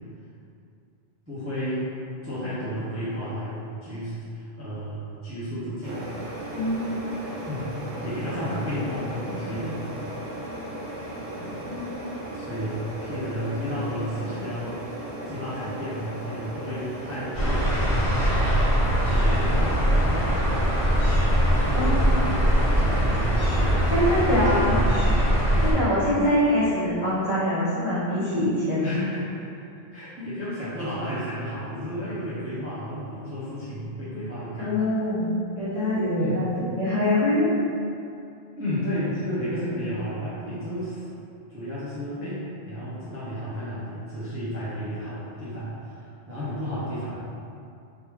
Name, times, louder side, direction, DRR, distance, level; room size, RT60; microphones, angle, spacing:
voice 1, 1.3-1.9 2.2-6.1 7.5-9.9 11.4-11.6 12.3-14.8 15.3-18.6 19.0-20.4 21.4-23.9 24.2-25.0 25.4-25.7 28.8-29.6 29.9-34.7 36.2-36.4 38.5-41.0 41.5-47.1, equal, 15° right, -12 dB, 0.7 m, -32 dB
sound 1, 5.8-24.3, right 1 dB, 85° right, 1.1 m, -36 dB
voice 2, 6.5-7.0 11.7-11.9 21.7-22.0 23.9-24.8 25.6-28.9 34.6-35.3 35.6-37.5, left 1 dB, 35° left, -13 dB, 1.4 m, -24 dB
sound 2, 17.3-25.7, equal, 55° left, 1.3 m, -22 dB
3.5 x 2.9 x 3.1 m, 2.6 s
omnidirectional pair, 1.1 m